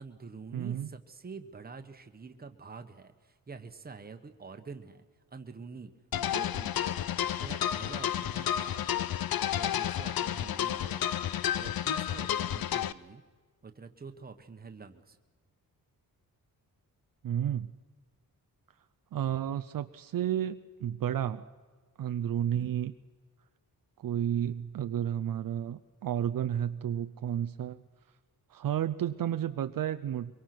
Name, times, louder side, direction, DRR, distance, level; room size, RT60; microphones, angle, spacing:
voice 1, 0.0-5.0 5.3-5.9 6.2-7.0 7.4-8.8 9.5-11.1 11.5-13.2 13.6-15.2 22.5-22.8, right 4 dB, 25° right, 7 dB, 1.3 m, -47 dB
voice 2, 0.5-0.9 17.2-17.7 19.1-21.4 22.0-22.9 24.0-27.8 28.5-30.3, right 10 dB, 65° right, 10 dB, 0.6 m, -32 dB
sound 1, 6.1-12.9, left 10 dB, 70° left, 0.7 m, -31 dB
24.5 x 23.0 x 6.1 m, 1.4 s
wide cardioid pair, 175°, 37 cm